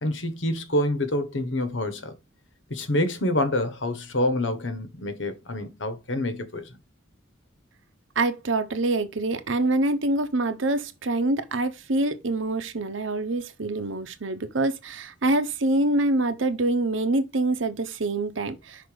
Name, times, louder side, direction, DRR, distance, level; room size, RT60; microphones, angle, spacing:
voice 1, 0.0-2.1 2.7-6.8, left 1 dB, 75° left, 1.2 m, -27 dB
voice 2, 8.2-18.9, right 2 dB, 80° right, 0.9 m, -25 dB
5.7 x 4.0 x 4.9 m
head